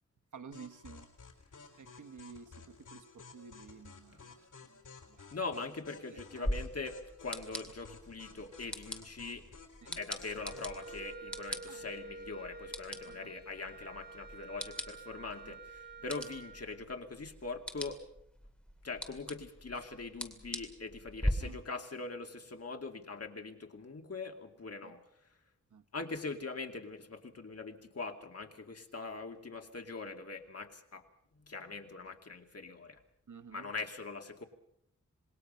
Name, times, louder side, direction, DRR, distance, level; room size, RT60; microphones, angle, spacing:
voice 1, 0.3-1.1 1.8-4.8 5.1-5.3 6.1-6.5 9.8-10.0 11.7-11.8 13.1-13.3 15.4-15.6 21.4-21.6 24.8-25.0 25.7-25.8 33.3-33.7, right 5 dB, 80° right, 9 dB, 1.2 m, -52 dB
sound 1, 0.5-11.1, left 5 dB, 85° left, 4.2 m, -54 dB
voice 2, 5.3-9.5 10.0-18.0 18.8-25.0 25.9-31.0 31.3-33.0 33.5-34.4, left 3 dB, 55° left, 4 dB, 2.5 m, -42 dB
sound 2, 6.4-21.3, equal, 5° left, 2.8 m, -42 dB
Wind instrument woodwind instrument, 10.2-16.7, right 3 dB, 35° right, 4.1 m, -49 dB
27.0 x 20.5 x 5.6 m, 0.70 s
wide cardioid pair, 100°, 30 cm